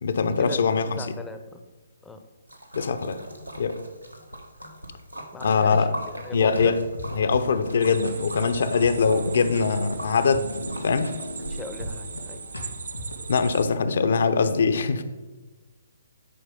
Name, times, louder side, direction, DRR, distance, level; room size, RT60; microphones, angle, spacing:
voice 1, 0.0-0.9 2.8-3.2 3.6-3.8 5.4-5.9 6.3-6.7 7.1-11.1 13.3-15.0, left 5 dB, 50° left, 11 dB, 0.6 m, -22 dB
voice 2, 1.0-1.6 2.0-2.2 5.3-5.9 6.2-6.8 11.5-12.4, left 3 dB, 5° left, 7 dB, 0.6 m, -39 dB
Splash splatter, 2.5-12.0, right 1 dB, 90° right, 1.3 m, -40 dB
sound 1, 6.2-13.2, left 1 dB, 85° left, 2.2 m, -39 dB
sound 2, 7.8-13.6, right 5 dB, 55° right, 0.6 m, -39 dB
10.5 x 4.7 x 5.1 m, 1.2 s
figure-of-eight pair, 130°, 0 cm